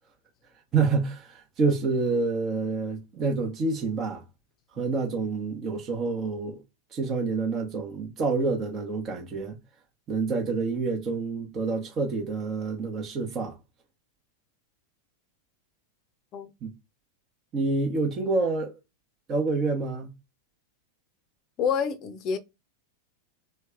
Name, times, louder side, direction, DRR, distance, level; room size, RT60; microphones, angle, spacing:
voice 1, 0.7-4.2 4.8-6.6 6.9-9.6 10.1-13.6 16.6-16.7 17.5-18.7 19.3-20.1, right 4 dB, 30° right, 1.0 m, -27 dB
voice 2, 21.6-22.4, left 7 dB, 35° left, 0.7 m, -27 dB
3.3 x 2.2 x 3.4 m
figure-of-eight pair, 90°, 0 cm